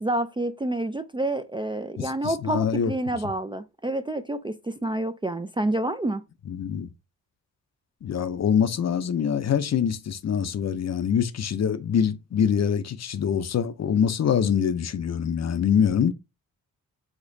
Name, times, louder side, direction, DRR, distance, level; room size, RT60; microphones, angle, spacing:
voice 1, 0.0-6.2, right 1 dB, 15° right, 0.3 m, -28 dB
voice 2, 2.0-2.9 6.5-6.9 8.0-16.1, left 8 dB, 50° left, 0.5 m, -24 dB
5.1 x 3.7 x 2.6 m
cardioid pair, 75°, 34 cm